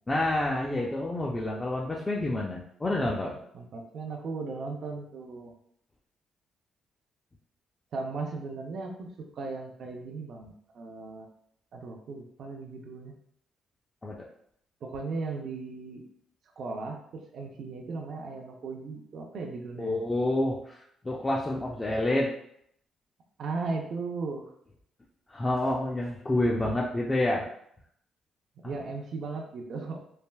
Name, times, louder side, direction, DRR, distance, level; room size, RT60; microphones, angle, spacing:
voice 1, 0.1-3.4 14.0-14.3 19.8-22.3 25.3-27.5 28.6-28.7, left 1 dB, 20° left, -3 dB, 0.4 m, -28 dB
voice 2, 3.5-5.5 7.9-11.3 11.7-13.2 14.8-16.0 16.6-19.9 23.4-24.4 28.6-30.0, right 3 dB, 65° right, 1 dB, 0.4 m, -37 dB
3.3 x 2.4 x 2.2 m, 0.69 s
cardioid pair, 90°, 0 cm